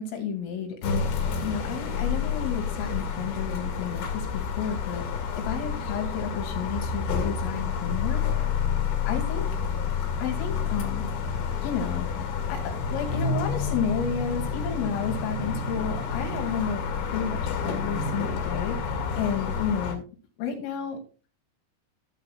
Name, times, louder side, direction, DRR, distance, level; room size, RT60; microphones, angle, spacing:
voice 1, 0.0-5.0 5.4-8.2 9.1-9.5 10.2-11.1 11.6-12.1 12.5-16.8 17.1-20.1 20.4-21.0, left 7 dB, 80° left, 2 dB, 4.7 m, -32 dB
sound 1, 0.8-20.0, left 5 dB, 65° left, 3.9 m, -29 dB
15.0 x 8.1 x 2.3 m, 0.35 s
omnidirectional pair, 5.8 m